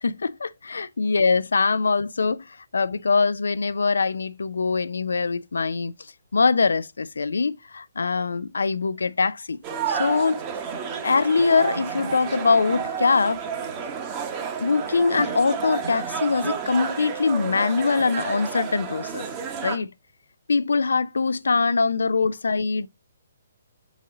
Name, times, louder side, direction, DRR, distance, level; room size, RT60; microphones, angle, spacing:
voice 1, 0.0-2.4 2.7-5.9 6.3-9.6 9.9-10.4 11.0-13.4 14.6-19.3 19.6-19.9 20.5-22.9, left 4 dB, 80° left, 0.4 m, -23 dB
sound 1, 9.6-19.8, right 6 dB, 30° right, 1.0 m, -31 dB
6.3 x 4.0 x 3.7 m
hypercardioid pair, 135°, 0 cm